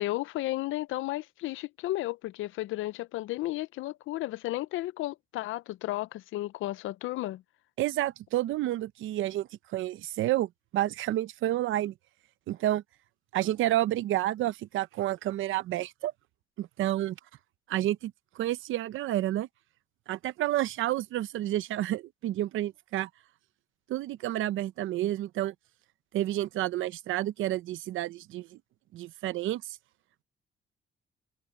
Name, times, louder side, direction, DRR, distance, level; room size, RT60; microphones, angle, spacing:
voice 1, 0.0-7.4, left 16 dB, 85° left, 0.5 m, -33 dB
voice 2, 7.8-11.9 12.5-12.8 13.3-16.1 16.6-17.2 17.7-19.5 20.1-23.1 23.9-25.5 26.1-28.6 28.9-29.8, right 14 dB, 80° right, 0.8 m, -30 dB
cardioid pair, 90°, 20 cm